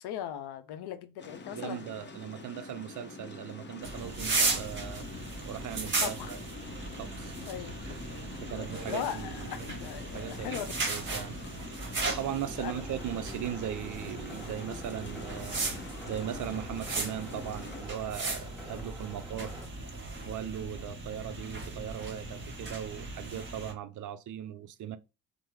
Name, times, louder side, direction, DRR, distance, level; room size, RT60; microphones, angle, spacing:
voice 1, 0.0-1.8 6.0-6.3 7.5-7.9 8.6-10.8 12.6-12.8, left 10 dB, 65° left, 0.6 m, -39 dB
sound 1, 1.2-17.8, left 3 dB, 25° left, 0.7 m, -46 dB
voice 2, 1.5-5.1 5.5-6.4 6.9-7.4 7.8-9.7 10.1-19.6 20.2-25.0, right 10 dB, 50° right, 0.4 m, -39 dB
sound 2, 3.8-23.7, right 3 dB, 30° right, 1.1 m, -37 dB
sound 3, 12.8-19.7, equal, ahead, 1.1 m, -49 dB
3.3 x 2.0 x 3.0 m
hypercardioid pair, 50°, 42 cm